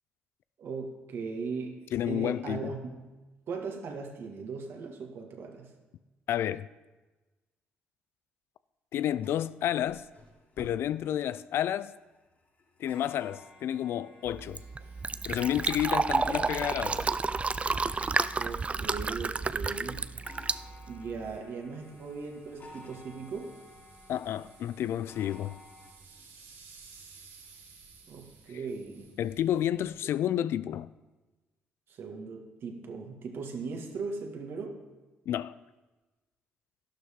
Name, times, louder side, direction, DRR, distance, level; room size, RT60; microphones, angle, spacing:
voice 1, 0.6-3.0 3.5-5.7 18.4-20.1 20.9-23.6 28.1-29.1 31.9-34.8, right 4 dB, 65° right, 1.9 m, -38 dB
voice 2, 1.9-2.7 6.3-6.7 8.9-10.0 10.6-11.9 12.8-14.6 15.2-17.1 24.1-25.6 29.2-30.9 35.3-35.6, left 11 dB, 65° left, 0.4 m, -30 dB
sound 1, 9.2-25.9, left 2 dB, 45° left, 4.5 m, -53 dB
Fill (with liquid), 14.3-21.4, right 4 dB, 30° right, 0.4 m, -31 dB
sound 2, 14.4-30.0, right 4 dB, 80° right, 4.5 m, -58 dB
12.0 x 11.5 x 3.8 m
supercardioid pair, 60°, 4 cm